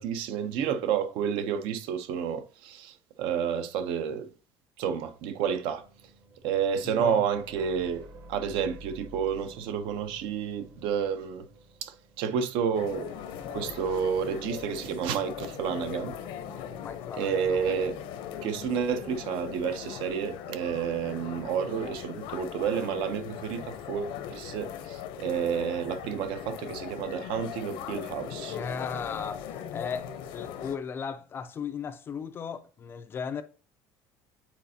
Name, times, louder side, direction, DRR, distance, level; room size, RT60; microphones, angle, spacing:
voice 1, 0.0-4.3 4.8-5.8 6.4-8.0 8.3-11.5 11.8-13.1 13.5-16.2 17.2-17.9 18.4-28.6, right 7 dB, 65° right, 0.7 m, -30 dB
sound 1, 5.4-18.9, right 2 dB, 40° right, 1.0 m, -51 dB
voice 2, 6.8-7.2 16.8-17.8 28.5-33.4, left 6 dB, 25° left, 0.4 m, -36 dB
sound 2, 12.7-30.8, left 9 dB, 65° left, 0.8 m, -40 dB
9.0 x 4.2 x 2.8 m
cardioid pair, 180°, 9 cm